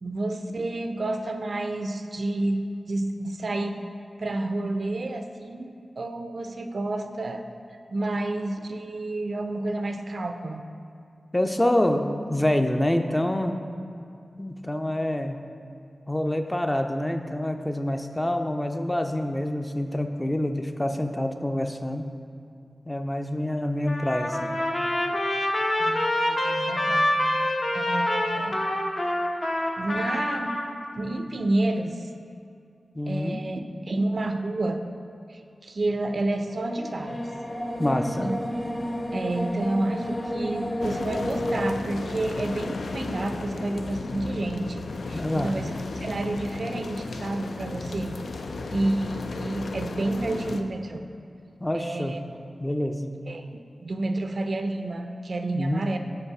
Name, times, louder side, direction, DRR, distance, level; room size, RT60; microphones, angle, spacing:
voice 1, 0.0-3.8 4.2-7.5 7.9-10.6 25.8-28.6 29.8-30.6 30.9-32.1 33.1-34.8 35.3-37.2 38.2-38.4 39.1-48.1 48.7-51.1 51.7-52.2 53.3-56.0, right 2 dB, 65° right, 6 dB, 0.4 m, -30 dB
voice 2, 11.3-13.6 14.4-15.4 16.1-22.1 22.9-24.5 33.0-33.4 37.8-38.3 45.1-45.5 51.6-52.2 52.6-53.2 55.5-55.8, left 1 dB, 15° left, 5 dB, 0.4 m, -26 dB
Trumpet, 23.9-30.7, left 1 dB, 50° left, 0.8 m, -26 dB
sound 1, 36.5-41.7, left 1 dB, 35° left, 1.6 m, -31 dB
sound 2, 40.8-50.6, left 3 dB, 85° left, 0.3 m, -34 dB
5.4 x 4.1 x 5.9 m, 2.4 s
cardioid pair, 45°, 0 cm